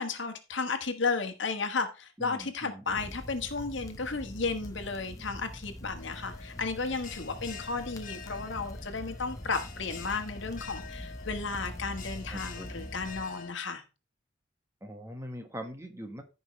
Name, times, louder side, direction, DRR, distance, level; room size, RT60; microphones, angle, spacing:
voice 1, 0.0-13.8, left 4 dB, 70° left, 1.3 m, -33 dB
voice 2, 2.2-3.2 12.3-12.9 14.8-16.2, equal, 15° right, 1.4 m, -43 dB
sound 1, 2.9-13.2, equal, 15° left, 0.9 m, -44 dB
Bell, 6.0-13.5, left 6 dB, 40° left, 1.3 m, -47 dB
15.5 x 5.4 x 3.1 m
head